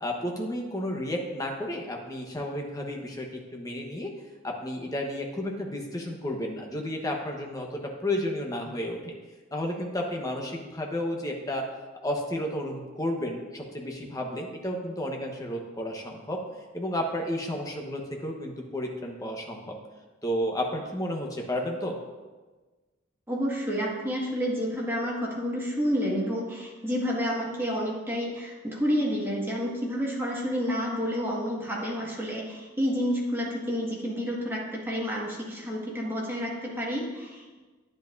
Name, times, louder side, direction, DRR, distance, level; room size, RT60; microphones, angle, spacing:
voice 1, 0.0-4.1 4.4-9.1 9.5-11.6 12.0-16.4 16.7-19.8 20.2-22.0, left 1 dB, 15° left, 1 dB, 1.1 m, -32 dB
voice 2, 23.3-37.6, equal, 10° right, -4 dB, 1.7 m, -29 dB
9.9 x 9.6 x 2.6 m, 1.3 s
head